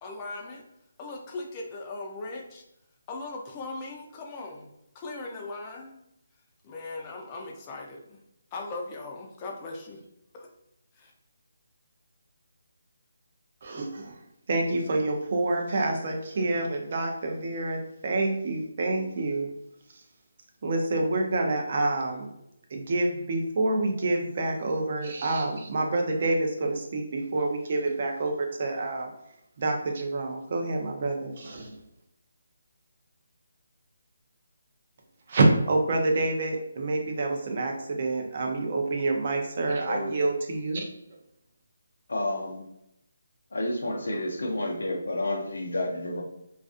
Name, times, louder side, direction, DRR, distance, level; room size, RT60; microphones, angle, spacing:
voice 1, 0.0-0.6 1.0-2.6 3.1-4.7 4.9-6.0 6.6-8.2 8.5-10.0 10.3-10.5 11.0-11.1, left 3 dB, 20° left, 0 dB, 0.4 m, -38 dB
voice 2, 13.6-14.2 14.5-19.5 20.6-22.3 22.7-29.1 29.6-31.8 35.3-40.8, right 2 dB, 40° right, 2 dB, 0.4 m, -27 dB
voice 3, 42.1-42.7 43.5-46.2, left 1 dB, 85° left, 0 dB, 0.5 m, -30 dB
2.4 x 2.3 x 2.4 m, 0.81 s
hypercardioid pair, 165°, 0 cm